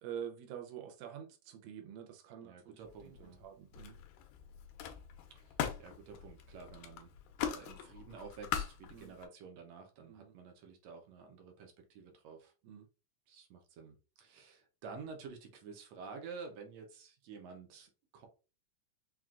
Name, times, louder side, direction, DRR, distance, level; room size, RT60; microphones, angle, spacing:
voice 1, 0.0-3.9 8.9-9.1 10.1-10.3 12.6-12.9, right 9 dB, 90° right, 2.2 m, -47 dB
voice 2, 2.4-3.4 5.3-12.5 13.3-18.3, right 5 dB, 70° right, 1.7 m, -51 dB
Camera, 2.8-3.4 3.7-9.2, left 9 dB, 80° left, 2.1 m, -42 dB
5.8 x 2.4 x 2.4 m
omnidirectional pair, 3.6 m